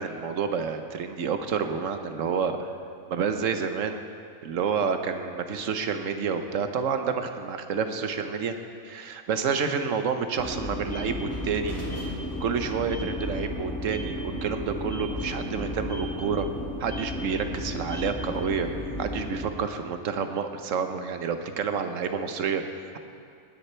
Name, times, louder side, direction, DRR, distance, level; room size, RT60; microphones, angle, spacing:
voice 1, 0.0-2.7 3.1-4.0 4.4-8.5 8.8-11.8 12.4-16.5 16.8-18.7 19.0-23.0, right 6 dB, 80° right, 7 dB, 1.2 m, -29 dB
sound 1, 10.4-19.4, left 1 dB, 10° left, 2.1 m, -33 dB
20.0 x 9.9 x 4.4 m, 2.4 s
omnidirectional pair, 1.3 m